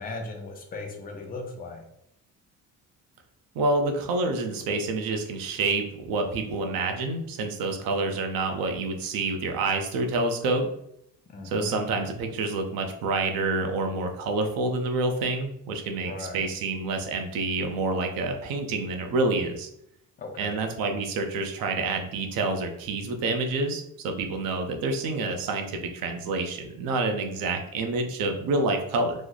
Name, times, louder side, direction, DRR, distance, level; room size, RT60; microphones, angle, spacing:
voice 1, 0.0-1.8 11.3-11.8 16.0-16.5 20.2-20.6, left 3 dB, 25° left, 3 dB, 0.5 m, -37 dB
voice 2, 3.5-10.7 11.4-19.7 20.4-29.1, right 3 dB, 85° right, 5 dB, 0.7 m, -28 dB
3.1 x 2.0 x 3.8 m, 0.76 s
cardioid pair, 175°, 34 cm